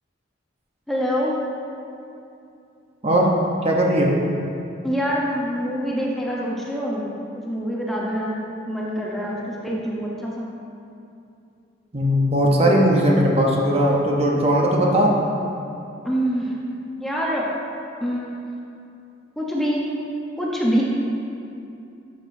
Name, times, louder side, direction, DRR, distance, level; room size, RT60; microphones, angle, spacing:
voice 1, 0.9-1.4 4.8-7.1 7.5-8.4 8.7-10.4 16.0-16.6 17.0-17.5 18.0-18.5 19.4-19.9 20.4-20.8, equal, ahead, -4 dB, 0.8 m, -25 dB
voice 2, 3.0-3.3 3.6-4.1 11.9-15.1, equal, 35° right, -2 dB, 0.8 m, -18 dB
12.0 x 6.4 x 2.7 m, 2.7 s
head